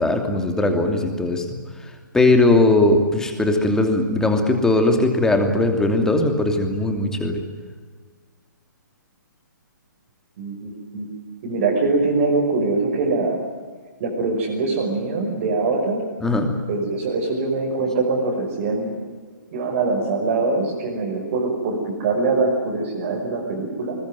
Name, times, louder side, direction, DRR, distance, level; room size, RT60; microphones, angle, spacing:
voice 1, 0.0-1.4 2.1-7.4 16.2-16.5, left 2 dB, 5° left, 4 dB, 2.7 m, -19 dB
voice 2, 10.4-11.1 11.4-13.4 14.0-16.0 16.7-19.0 19.5-24.0, right 3 dB, 40° right, -1 dB, 5.6 m, -23 dB
21.0 x 20.5 x 9.4 m, 1.5 s
figure-of-eight pair, 130°, 11 cm